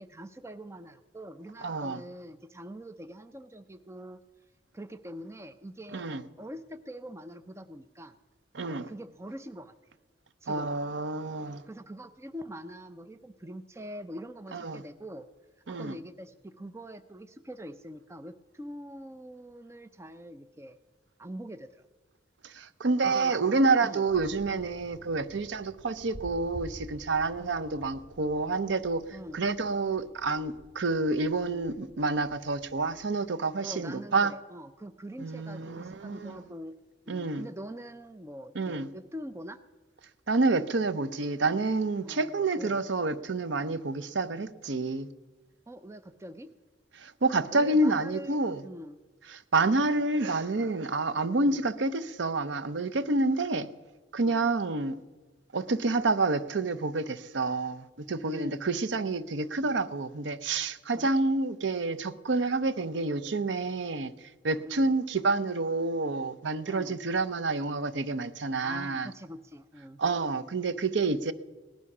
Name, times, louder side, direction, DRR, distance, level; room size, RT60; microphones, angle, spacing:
voice 1, 0.0-4.2 4.7-6.1 6.4-8.2 8.9-9.7 10.4-10.8 11.7-15.3 15.7-20.8 21.2-21.9 23.0-23.3 23.6-24.0 27.4-27.6 29.1-29.4 33.6-36.8 37.1-39.6 42.0-42.8 45.7-46.5 47.5-49.0 51.4-51.7 54.2-54.5 58.2-58.7 61.0-61.1 64.6-64.9 66.6-67.0 68.6-70.0, equal, 15° right, 0.5 m, -44 dB
voice 2, 1.6-2.0 5.9-6.2 8.5-8.9 10.5-11.6 14.5-14.8 15.7-16.0 22.4-29.1 29.3-34.3 35.2-36.4 37.1-37.5 38.5-38.9 40.3-45.1 47.0-48.6 49.3-53.7 54.1-55.0 55.5-64.1 64.4-69.1 70.0-71.3, right 3 dB, 75° right, 0.7 m, -28 dB
sound 1, 24.1-33.0, left 1 dB, 45° right, 3.0 m, -50 dB
17.5 x 11.0 x 6.0 m
head